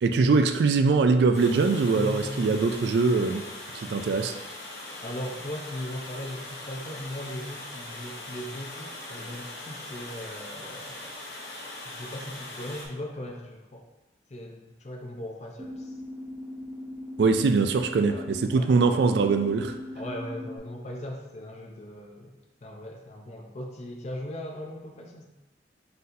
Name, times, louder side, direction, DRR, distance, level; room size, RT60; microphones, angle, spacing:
voice 1, 0.0-3.5 3.7-4.3 17.2-19.8, right 4 dB, 65° right, 7 dB, 0.3 m, -22 dB
Water, 1.3-12.9, left 2 dB, 60° left, 0.8 m, -41 dB
voice 2, 1.9-2.6 5.0-11.1 11.8-13.8 14.3-16.0 18.1-18.7 19.9-25.3, left 1 dB, 40° left, 0 dB, 0.5 m, -38 dB
sound 1, 15.6-20.6, left 1 dB, 20° right, 0.7 m, -39 dB
4.1 x 4.0 x 2.6 m, 1.0 s
head